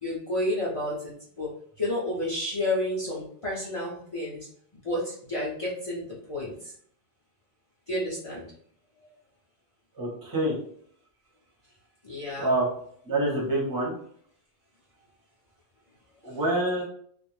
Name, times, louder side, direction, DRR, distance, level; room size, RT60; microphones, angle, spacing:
voice 1, 0.0-1.5 1.8-4.5 4.8-6.0 6.3-6.5 7.9-8.4 12.0-12.5, left 1 dB, 35° left, -7 dB, 0.6 m, -30 dB
voice 2, 9.9-10.6 12.4-12.7 13.0-13.9 16.2-16.8, right 1 dB, 20° right, -3 dB, 0.7 m, -26 dB
2.4 x 2.0 x 3.1 m, 0.62 s
omnidirectional pair, 1.2 m